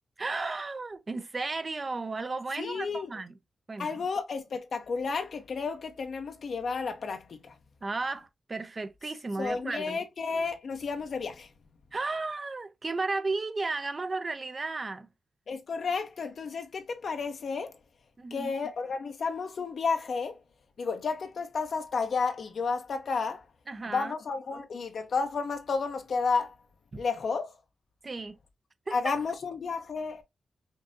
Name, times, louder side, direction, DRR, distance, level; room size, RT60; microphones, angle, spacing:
voice 1, 0.2-3.3 3.7-3.9 7.8-10.0 11.9-15.1 18.2-18.5 23.7-24.1 26.9-27.0 28.0-28.4 28.9-29.0, right 3 dB, 35° right, 0.5 m, -34 dB
voice 2, 2.6-3.1 3.8-7.6 9.4-11.5 15.5-17.8 18.3-20.4 20.8-23.5 23.9-26.6 27.0-27.6 28.9-30.2, left 4 dB, 65° left, 0.6 m, -32 dB
5.2 x 2.6 x 2.5 m
wide cardioid pair, 100°, 0 cm